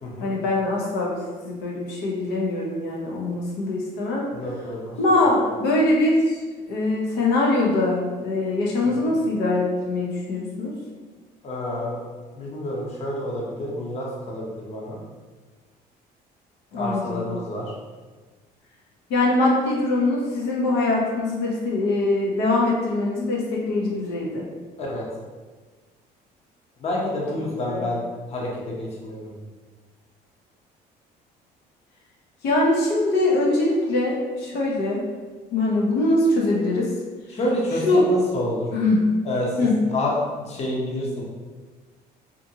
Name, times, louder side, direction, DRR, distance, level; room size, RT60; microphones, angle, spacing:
voice 1, 0.2-1.2 1.4-4.3 5.0-6.4 6.7-10.7 16.7-17.2 19.1-24.4 27.6-27.9 32.4-35.1 35.5-36.9 37.8-38.1 38.7-39.1 39.6-39.8, left 2 dB, 85° left, -3 dB, 0.6 m, -22 dB
voice 2, 4.3-4.9 9.0-9.1 11.4-12.0 12.3-15.0 16.7-17.7 24.8-25.1 26.8-28.0 28.3-29.3 37.3-38.7 39.2-41.2, left 1 dB, 40° left, -3 dB, 0.7 m, -28 dB
2.6 x 2.5 x 2.7 m, 1.4 s
cardioid pair, 110°, 17 cm